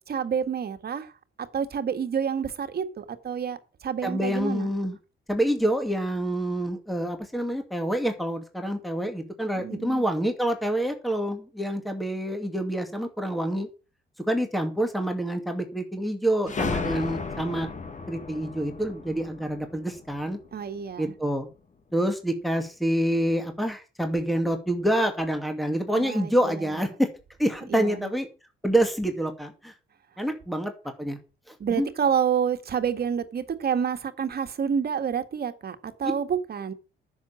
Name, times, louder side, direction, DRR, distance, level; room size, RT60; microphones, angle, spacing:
voice 1, 0.1-1.1 1.4-4.7 9.6-10.0 20.5-21.1 25.9-26.3 27.7-28.1 31.6-36.7, right 7 dB, 50° right, 1.9 m, -28 dB
voice 2, 4.0-5.0 5.3-13.7 14.2-17.7 18.1-20.4 21.0-21.5 21.9-27.1 27.4-28.3 28.6-29.7 30.2-30.7 31.0-31.2 31.5-31.9, right 1 dB, ahead, 2.3 m, -27 dB
sound 1, 16.5-20.9, left 4 dB, 40° left, 1.9 m, -34 dB
10.5 x 7.3 x 7.5 m
cardioid pair, 90°, 20 cm